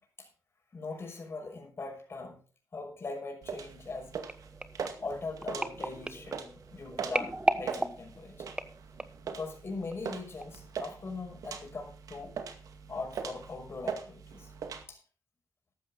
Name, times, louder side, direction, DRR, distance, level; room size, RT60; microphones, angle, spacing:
voice 1, 0.7-2.4 2.7-4.1 5.0-8.5 9.2-12.3 12.9-14.5 14.9-15.0, left 3 dB, 45° left, 2 dB, 5.9 m, -40 dB
sound 1, 3.4-14.8, right 6 dB, 75° right, 2.2 m, -42 dB
sound 2, 4.3-9.3 9.9-10.1 10.4-10.5, right 2 dB, 15° right, 1.1 m, -35 dB
14.5 x 11.5 x 4.1 m, 0.36 s
cardioid pair, 95°, 6 cm